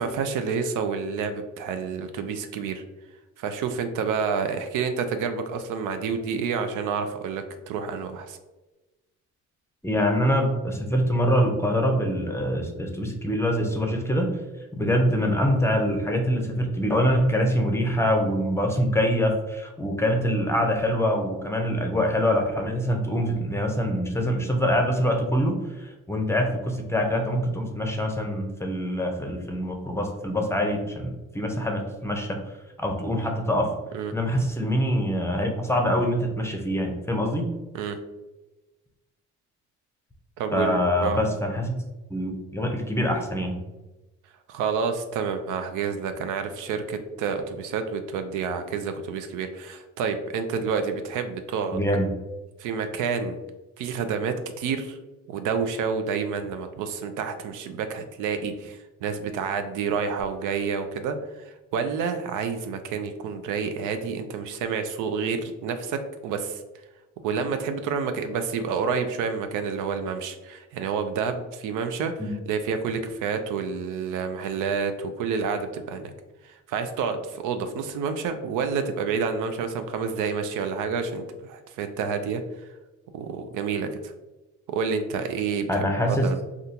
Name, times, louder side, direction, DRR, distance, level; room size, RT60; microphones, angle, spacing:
voice 1, 0.0-2.8 3.4-8.4 33.9-34.1 37.7-38.0 40.4-41.2 44.5-51.8 52.6-53.4 53.8-55.0 55.3-66.6 67.2-76.1 76.4-82.4 83.1-84.1 84.7-86.4, right 5 dB, 90° right, 8 dB, 0.5 m, -29 dB
voice 2, 9.8-14.3 14.7-32.4 32.8-33.7 34.1-37.5 40.5-41.8 42.1-43.6 51.7-52.1 72.2-72.3 85.7-86.3, equal, 10° left, 3 dB, 0.6 m, -24 dB
3.6 x 2.3 x 2.7 m, 1.1 s
cardioid pair, 90°, 30 cm